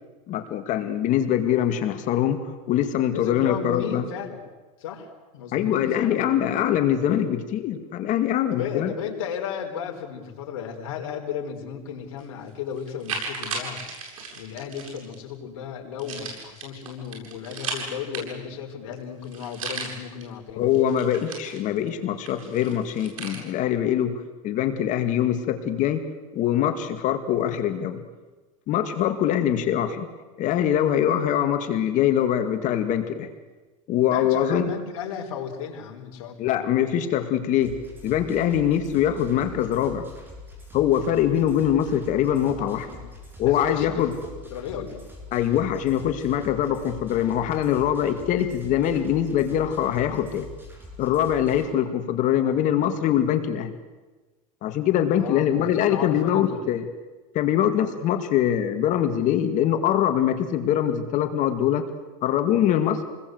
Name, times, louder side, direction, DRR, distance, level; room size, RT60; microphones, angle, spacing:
voice 1, 0.3-4.1 5.5-8.9 20.6-26.1 26.3-28.0 28.7-30.1 30.4-33.3 33.9-34.7 36.4-37.8 38.0-40.1 40.7-42.9 43.4-44.2 45.3-50.5 51.0-53.8 54.6-56.9 57.3-61.9 62.2-63.0, left 10 dB, 45° left, 8 dB, 2.2 m, -23 dB
voice 2, 3.0-4.4 4.8-6.3 8.0-8.2 8.5-13.8 14.3-20.7 34.0-36.6 42.3-43.1 43.5-44.1 44.4-45.0 52.2-53.0 55.1-56.6, left 8 dB, 75° left, 2 dB, 4.9 m, -35 dB
sound 1, 12.2-12.3 12.8-15.2 16.0-18.6 18.9-19.0 19.2-20.2 20.7-21.9 22.3-23.4, right 4 dB, 85° right, 8.0 m, -35 dB
sound 2, 37.6-51.7, left 3 dB, 10° right, 7.1 m, -43 dB
28.0 x 20.5 x 8.1 m, 1.2 s
supercardioid pair, 125°, 18 cm